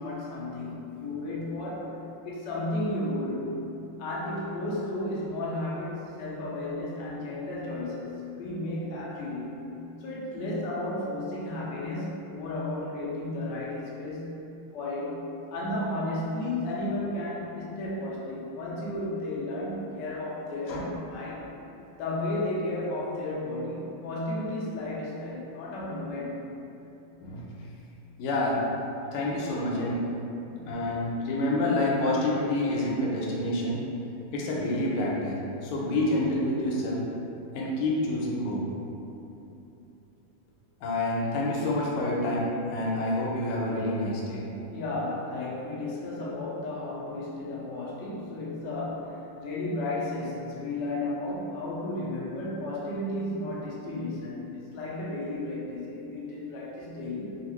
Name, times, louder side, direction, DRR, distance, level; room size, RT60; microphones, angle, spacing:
voice 1, 0.0-2.0 2.2-3.6 4.0-9.6 10.0-14.5 14.7-15.2 15.5-21.5 22.0-26.4 30.4-30.8 44.6-57.4, left 1 dB, 70° left, -6 dB, 1.1 m, -33 dB
voice 2, 28.2-28.6 29.1-30.0 30.6-33.8 34.3-37.0 37.5-38.6 40.8-44.4, left 1 dB, 90° left, -4 dB, 1.5 m, -28 dB
3.6 x 2.4 x 3.0 m, 2.9 s
omnidirectional pair, 2.4 m